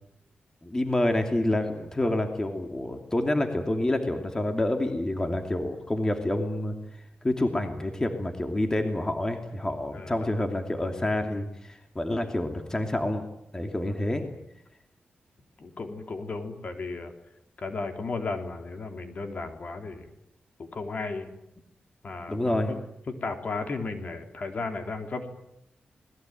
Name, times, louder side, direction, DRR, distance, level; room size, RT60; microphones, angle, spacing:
voice 1, 0.6-6.7 7.2-13.3 13.5-14.2 22.3-22.7, left 1 dB, 20° left, 5 dB, 2.7 m, -28 dB
voice 2, 9.9-10.3 13.9-14.4 15.6-17.1 17.6-20.1 20.6-21.3 22.0-22.8 23.1-25.3, left 3 dB, 45° left, 5 dB, 3.6 m, -35 dB
28.0 x 20.5 x 9.3 m, 0.83 s
wide cardioid pair, 125°, 3 cm